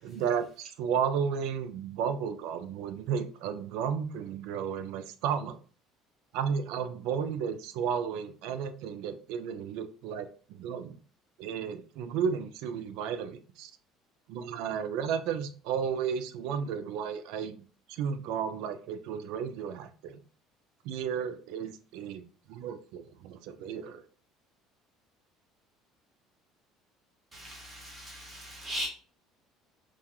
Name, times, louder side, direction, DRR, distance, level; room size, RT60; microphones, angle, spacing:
voice 1, 0.0-5.6 6.3-11.0 11.4-13.7 14.3-17.6 17.9-20.2 20.8-24.0, right 7 dB, 75° right, 9 dB, 0.3 m, -33 dB
voice 2, 27.3-28.9, equal, 20° right, -3 dB, 1.2 m, -38 dB
2.3 x 2.3 x 2.8 m, 0.40 s
cardioid pair, 150°, 0 cm